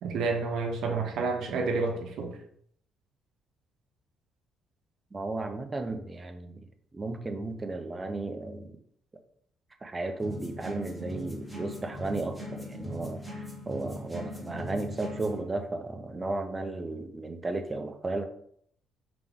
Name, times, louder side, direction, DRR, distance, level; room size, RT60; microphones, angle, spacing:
voice 1, 0.0-2.4, right 4 dB, 65° right, 2 dB, 0.8 m, -29 dB
voice 2, 5.1-6.7 6.9-8.7 9.8-18.2, right 2 dB, 20° right, 6 dB, 0.5 m, -34 dB
sound 1, 10.2-15.4, equal, ahead, 1.0 m, -40 dB
3.5 x 2.9 x 3.6 m, 0.65 s
cardioid pair, 115°, 0 cm